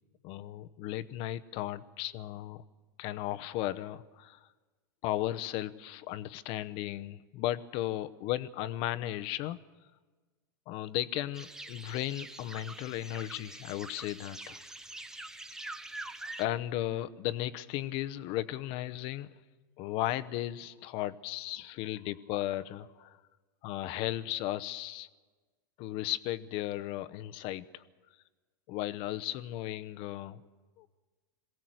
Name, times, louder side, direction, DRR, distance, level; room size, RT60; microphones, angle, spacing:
voice 1, 0.2-2.6 3.0-4.4 5.0-9.6 10.7-14.6 16.4-19.3 19.8-23.2 23.6-25.1 25.8-27.8 28.7-30.4 30.8-30.9, left 14 dB, 50° left, 13 dB, 1.0 m, -35 dB
sound 1, 11.3-16.4, right 2 dB, 5° right, 1.0 m, -45 dB
22.0 x 16.5 x 7.9 m, 1.3 s
hypercardioid pair, 110°, 11 cm